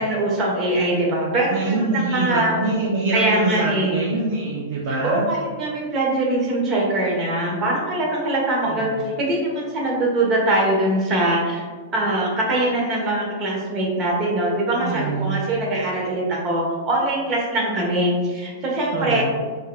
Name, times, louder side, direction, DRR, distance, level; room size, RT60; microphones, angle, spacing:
voice 1, 0.0-2.6 3.1-4.0 4.9-11.6 11.9-19.2, right 1 dB, 35° right, -2 dB, 1.3 m, -22 dB
voice 2, 1.5-5.3 8.7-8.9 14.8-15.4 18.9-19.2, right 3 dB, 60° right, -3 dB, 0.6 m, -24 dB
4.5 x 3.3 x 2.4 m, 1.5 s
hypercardioid pair, 115°, 0 cm